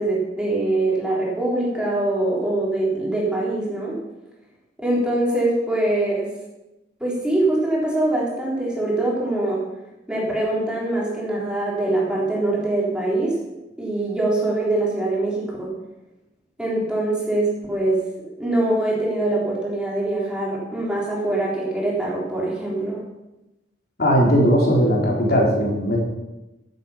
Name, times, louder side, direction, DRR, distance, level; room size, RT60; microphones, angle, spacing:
voice 1, 0.0-4.0 4.8-6.4 7.0-9.7 10.1-13.4 13.8-15.8 16.6-23.1, right 2 dB, 5° right, -5 dB, 3.9 m, -23 dB
voice 2, 24.0-26.0, equal, 55° left, -2 dB, 3.7 m, -18 dB
16.0 x 8.6 x 5.8 m, 0.99 s
head